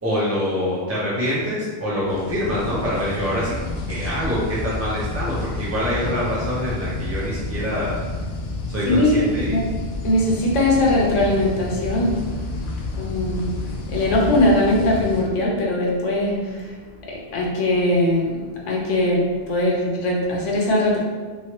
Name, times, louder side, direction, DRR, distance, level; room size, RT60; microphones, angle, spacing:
voice 1, 0.0-3.5 3.9-8.0 8.7-9.6, equal, 15° right, -9 dB, 0.6 m, -25 dB
sound 1, 2.1-15.2, left 2 dB, 65° left, 0.8 m, -30 dB
voice 2, 8.9-9.6 10.0-12.3 12.9-13.5 13.9-16.7 17.1-21.0, left 1 dB, 85° left, -3 dB, 1.1 m, -20 dB
3.1 x 3.0 x 2.9 m, 1.4 s
omnidirectional pair, 1.2 m